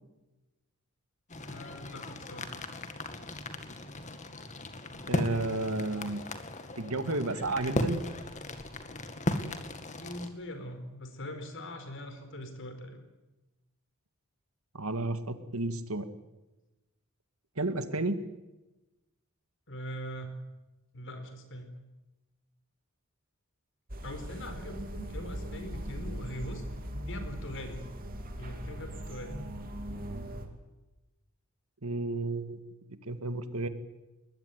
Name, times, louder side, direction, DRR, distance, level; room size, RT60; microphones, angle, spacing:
sound 1, 1.3-10.3, left 1 dB, 35° left, 2.1 m, -37 dB
voice 1, 1.4-2.5 10.0-13.0 19.7-20.4 20.9-21.7 24.0-26.6 27.1-27.8 28.4-29.4, equal, 60° left, 8 dB, 4.6 m, -42 dB
voice 2, 5.1-6.2 6.8-8.0 14.7-16.1 17.6-18.2 31.8-32.6 33.1-33.7, right 2 dB, 75° right, 10 dB, 2.0 m, -32 dB
sound 2, 23.9-30.5, equal, 40° right, 3.0 m, -40 dB
21.5 x 20.5 x 9.7 m, 1.0 s
head